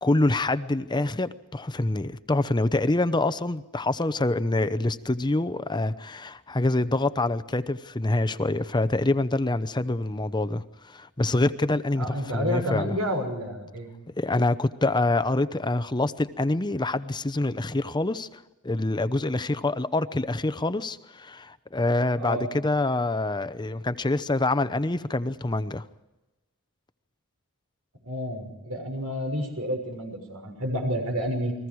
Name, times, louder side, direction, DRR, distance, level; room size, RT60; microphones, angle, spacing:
voice 1, 0.0-13.0 14.2-25.9, left 2 dB, 20° left, 0.8 m, -26 dB
voice 2, 12.0-13.9 22.2-22.5 28.0-31.5, equal, 85° right, 6.5 m, -30 dB
29.5 x 21.5 x 4.8 m
head